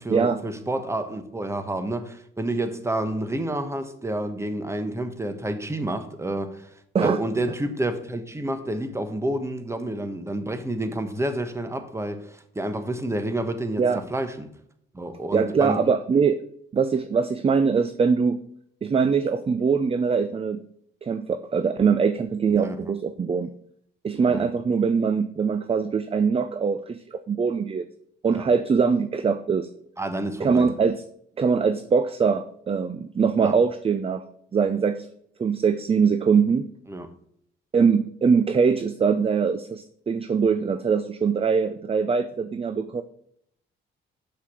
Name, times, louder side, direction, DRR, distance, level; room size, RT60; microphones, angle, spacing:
voice 1, 0.0-6.7 7.0-14.5 14.9-15.9 22.5-22.8 24.2-24.4 28.3-28.5 30.0-30.7 33.4-33.5 36.9-37.1, right 1 dB, 15° right, 1.2 m, -29 dB
voice 2, 15.3-16.4 16.7-18.4 18.8-20.6 21.0-21.3 21.5-23.5 24.0-27.9 28.2-29.7 30.4-31.0 31.4-34.2 34.5-35.1 35.4-36.7 37.7-43.0, right 5 dB, 30° right, 0.5 m, -22 dB
6.6 x 5.6 x 6.1 m
cardioid pair, 90°, 20 cm